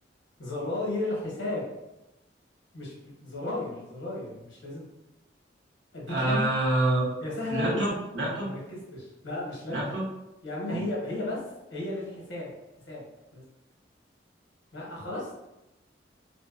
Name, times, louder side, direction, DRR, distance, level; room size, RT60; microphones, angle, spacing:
voice 1, 0.4-1.6 2.7-4.9 5.9-6.4 7.2-7.8 8.4-9.8 10.4-11.4 11.7-12.5 12.9-13.0 13.3-13.4 14.7-15.3, left 2 dB, 80° left, -4 dB, 0.9 m, -34 dB
voice 2, 6.1-7.1 7.5-8.5 9.7-10.0 10.7-10.8, right 2 dB, 75° right, -5 dB, 0.9 m, -27 dB
2.6 x 2.2 x 2.3 m, 0.94 s
head